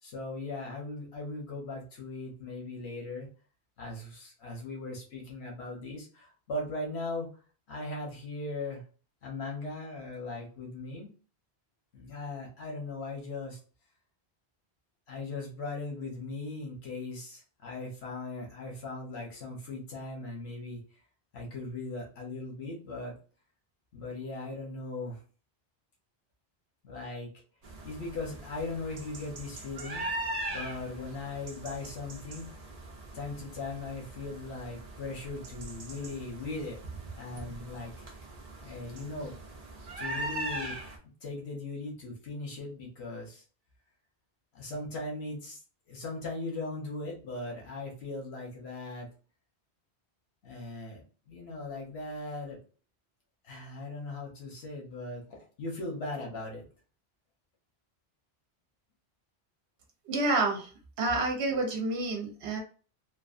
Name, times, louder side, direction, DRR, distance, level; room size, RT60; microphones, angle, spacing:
voice 1, 0.0-3.3 3.8-7.3 7.7-8.8 9.2-11.1 11.9-13.6 15.1-20.8 21.3-23.1 23.9-25.2 26.8-27.3 27.8-32.6 33.1-36.8 37.1-38.2 38.6-39.4 40.0-40.8 41.2-43.4 44.5-45.6 45.9-49.1 50.4-52.6 53.4-56.7, left 2 dB, 80° left, -2 dB, 1.2 m, -39 dB
sound 1, 27.6-41.0, right 1 dB, 45° right, 0.6 m, -41 dB
voice 2, 60.1-60.7 61.0-62.6, right 2 dB, 75° right, 3 dB, 0.9 m, -29 dB
3.1 x 2.3 x 2.4 m, 0.38 s
omnidirectional pair, 1.1 m